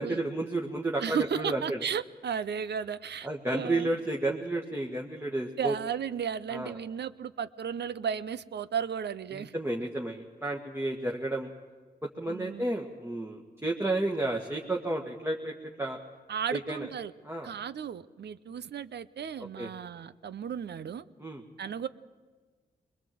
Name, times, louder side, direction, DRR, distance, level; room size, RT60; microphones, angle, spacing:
voice 1, 0.0-1.8 3.2-5.7 6.5-6.7 9.3-11.5 12.0-16.0 16.5-16.9 17.2-17.5 19.6-19.7 21.2-21.4, right 2 dB, 15° right, 0 dB, 1.8 m, -32 dB
voice 2, 1.0-3.9 5.6-9.5 12.3-12.7 16.3-17.1 17.4-21.0 21.6-21.9, right 7 dB, 75° right, 16 dB, 0.7 m, -34 dB
22.0 x 21.5 x 7.8 m, 1.4 s
cardioid pair, 60°, 18 cm